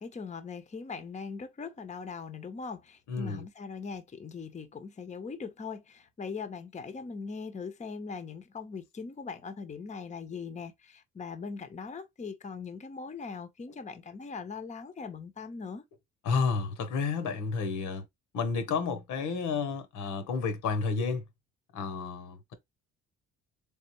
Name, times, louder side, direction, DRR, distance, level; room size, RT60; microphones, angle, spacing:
voice 1, 0.0-15.8, left 5 dB, 25° left, 0.7 m, -40 dB
voice 2, 3.1-3.5 16.2-18.0 18.3-21.2 21.7-22.5, left 5 dB, 85° left, 1.0 m, -31 dB
3.5 x 3.4 x 3.0 m
cardioid pair, 90°, 30 cm